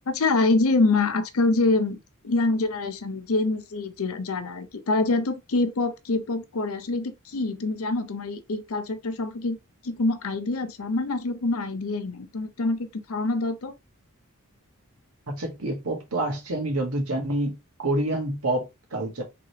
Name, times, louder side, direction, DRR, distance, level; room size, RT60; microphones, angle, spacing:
voice 1, 0.1-2.0 2.2-9.6 9.8-13.7, left 3 dB, 70° left, 0.6 m, -25 dB
voice 2, 15.3-19.2, right 1 dB, 80° right, 1.4 m, -28 dB
3.7 x 3.2 x 2.8 m
head